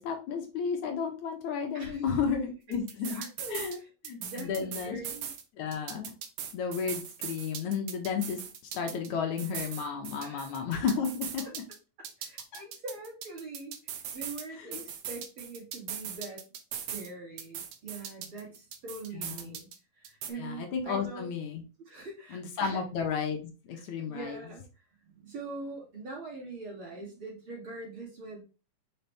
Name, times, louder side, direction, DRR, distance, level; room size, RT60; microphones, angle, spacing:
voice 1, 0.0-3.2 3.5-3.8 4.1-5.0 5.6-6.1 6.5-8.4 8.7-11.4 12.5-12.6 14.5-14.8 19.1-19.6 20.4-21.6 22.3-24.4, left 6 dB, 70° left, 3 dB, 2.1 m, -33 dB
sound 1, 2.7-3.8 4.0-5.4 5.7-9.1 9.4-11.8 12.0-14.4 14.7-17.1 17.4-19.8 20.0-20.3, right 8 dB, 70° right, 1.7 m, -39 dB
voice 2, 3.1-3.9 4.2-5.3 10.2-10.6 11.4-11.5 12.2-16.4 16.9-19.7 20.0-21.3 21.9-22.8 23.7-23.8 24.1-24.6 25.1-28.4, right 2 dB, 45° right, -3 dB, 2.9 m, -43 dB
5.6 x 5.1 x 3.4 m, 0.33 s
omnidirectional pair, 3.7 m